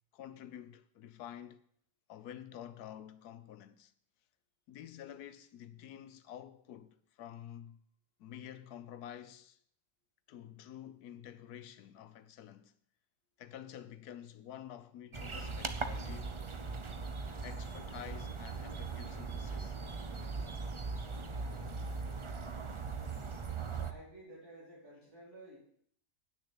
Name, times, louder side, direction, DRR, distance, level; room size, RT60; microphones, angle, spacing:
voice 1, 0.1-1.6 2.1-3.9 4.7-7.8 8.2-9.6 10.3-12.7 13.4-16.4 17.4-19.8, left 10 dB, 90° left, 1.3 m, -49 dB
sound 1, 15.1-23.9, right 4 dB, 45° right, 0.4 m, -39 dB
voice 2, 23.8-25.6, right 1 dB, 85° right, 5.2 m, -53 dB
9.0 x 6.6 x 8.5 m
omnidirectional pair, 1.6 m